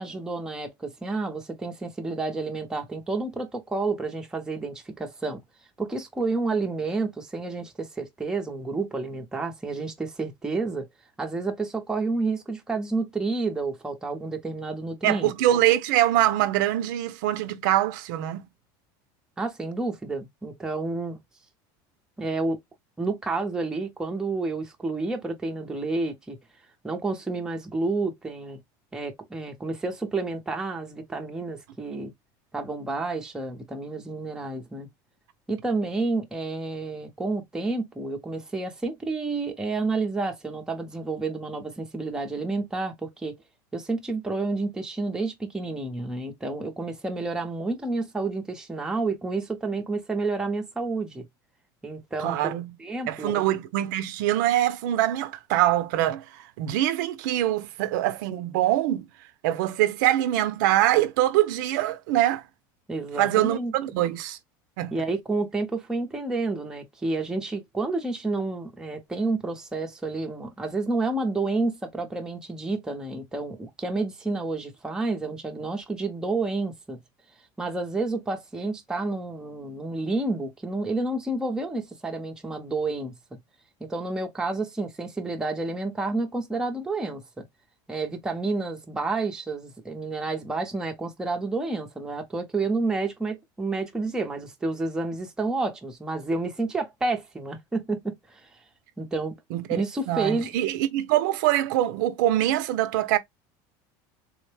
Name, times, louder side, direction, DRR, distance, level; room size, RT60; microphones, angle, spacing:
voice 1, 0.0-5.4 5.8-10.9 11.2-15.3 19.4-21.2 22.2-22.6 23.0-26.4 26.8-28.6 28.9-32.1 32.5-34.9 35.5-43.4 43.7-51.2 51.8-53.4 62.9-63.7 64.9-77.0 77.6-83.1 83.8-87.4 87.9-98.4 99.0-99.3 99.7-100.5, right 3 dB, 5° right, 0.6 m, -30 dB
voice 2, 15.0-18.4 52.2-52.8 53.1-59.1 59.4-62.4 63.2-64.4 64.8-65.0 99.5-103.2, right 13 dB, 80° right, 0.6 m, -24 dB
3.7 x 2.1 x 3.2 m
cardioid pair, 155°, 10 cm